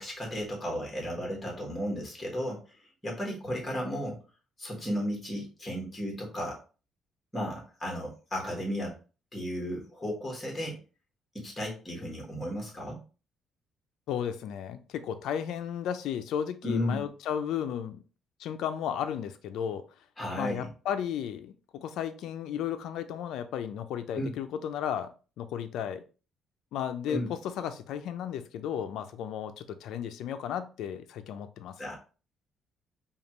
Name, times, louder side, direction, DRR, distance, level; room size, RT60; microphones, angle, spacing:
voice 1, 0.0-2.8 3.0-4.2 4.6-6.6 7.3-9.0 9.3-10.8 11.3-13.0 16.6-17.1 20.2-20.7 24.1-24.3 27.1-27.3 31.8-32.0, equal, 10° left, -1 dB, 1.4 m, -34 dB
voice 2, 14.1-18.0 18.4-19.8 20.3-26.0 26.7-31.8, left 9 dB, 75° left, 9 dB, 0.5 m, -34 dB
5.2 x 2.4 x 2.9 m, 0.34 s
cardioid pair, 175°, 0 cm